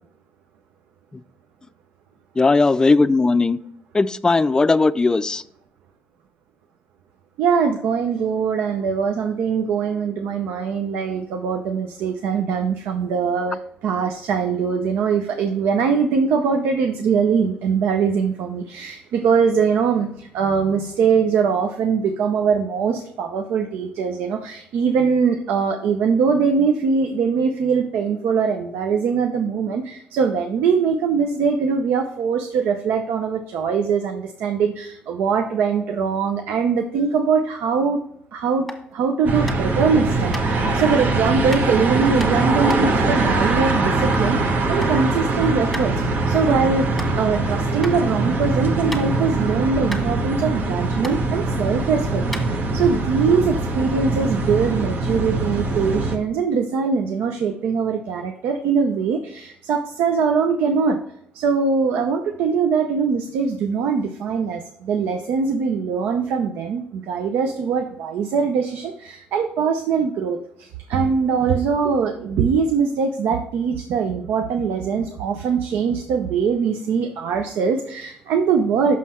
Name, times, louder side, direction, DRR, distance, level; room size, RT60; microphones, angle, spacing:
voice 1, 2.4-3.6 3.9-5.4, left 3 dB, 20° left, 0.4 m, -17 dB
voice 2, 7.4-38.0 38.3-45.9 46.3-46.9 47.1-61.0 61.3-79.0, right 5 dB, 80° right, 0.6 m, -22 dB
sound 1, 38.6-38.9 39.5-39.8 40.3-40.5 41.5-41.7 42.2-44.3 44.6-45.0 45.3-45.4 45.7-45.9 46.4-46.5 46.9-47.1 47.8-47.9 48.4-49.3 49.6-49.7 49.9-50.7 51.0-51.2 51.8-51.9 52.3-53.0, equal, ahead, 1.5 m, -34 dB
sound 2, 39.3-56.2, right 2 dB, 60° right, 1.0 m, -22 dB
6.3 x 5.5 x 4.3 m
cardioid pair, 85°, 4 cm